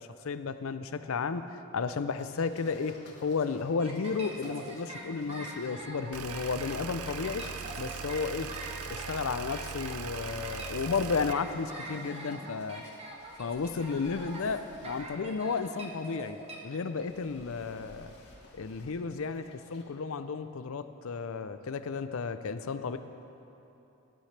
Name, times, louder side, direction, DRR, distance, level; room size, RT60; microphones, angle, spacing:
voice 1, 0.0-7.4 7.8-8.5 8.9-12.8 13.4-16.4 16.6-18.1 18.5-23.0, left 5 dB, 70° left, 11 dB, 0.5 m, -33 dB
sound 1, 2.2-19.8, left 1 dB, 50° left, 1.8 m, -54 dB
sound 2, 3.8-16.6, right 2 dB, 30° right, 1.1 m, -44 dB
sound 3, 6.1-11.3, right 7 dB, 85° right, 0.5 m, -40 dB
18.5 x 10.5 x 3.3 m, 2.9 s
head